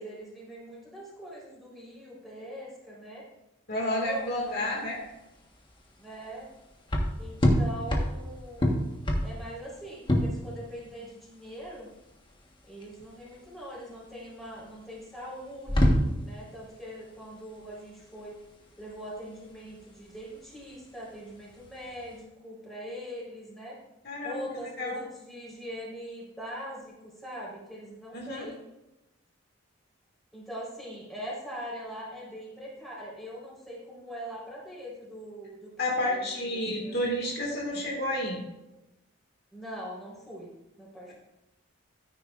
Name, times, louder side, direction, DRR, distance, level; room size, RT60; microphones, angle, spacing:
voice 1, 0.0-3.2 3.7-4.7 6.0-6.5 7.2-8.8 9.2-11.9 12.7-18.3 18.8-23.8 24.2-28.6 30.3-35.7 36.0-37.0 39.5-41.1, equal, ahead, -6 dB, 3.9 m, -42 dB
voice 2, 3.7-5.0 24.0-25.0 28.1-28.5 35.8-38.4, left 1 dB, 55° left, -1 dB, 1.9 m, -31 dB
sound 1, 4.0-22.2, equal, 25° left, 1.3 m, -30 dB
14.0 x 9.6 x 2.5 m, 0.96 s
head